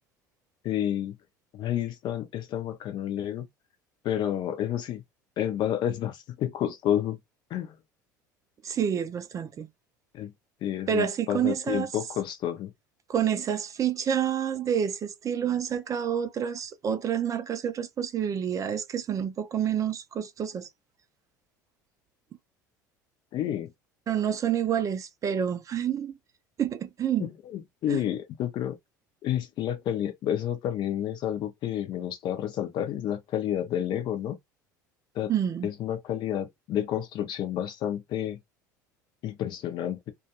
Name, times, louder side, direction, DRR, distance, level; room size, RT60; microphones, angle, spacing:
voice 1, 0.6-1.2 1.5-3.5 4.0-5.0 5.4-7.2 7.5-7.8 10.1-10.3 10.6-12.7 23.3-23.7 27.2-28.8 29.2-34.4 35.1-35.3 35.6-38.4 39.2-40.1, left 11 dB, 45° left, 0.7 m, -30 dB
voice 2, 8.6-9.7 10.9-11.9 13.1-20.7 24.1-26.2 26.6-27.3 27.9-28.0 35.3-35.7, right 8 dB, 35° right, 0.5 m, -28 dB
2.3 x 2.2 x 2.9 m
figure-of-eight pair, 70°, 10 cm